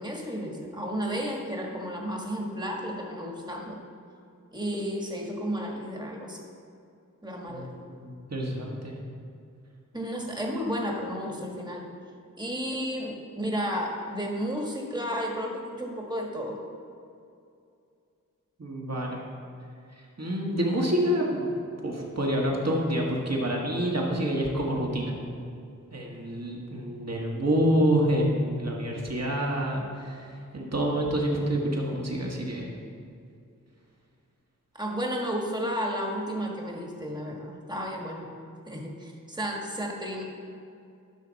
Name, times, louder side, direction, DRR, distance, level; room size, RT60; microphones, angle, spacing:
voice 1, 0.0-3.8 4.5-6.4 7.2-7.7 9.9-11.9 12.4-16.6 34.7-38.3 38.7-40.2, equal, 15° right, 0 dB, 1.5 m, -32 dB
voice 2, 7.5-9.0 18.6-19.2 20.2-21.5 21.8-25.1 25.9-32.7, equal, 50° right, -2 dB, 1.7 m, -27 dB
11.5 x 6.1 x 4.1 m, 2.5 s
wide cardioid pair, 50°, 33 cm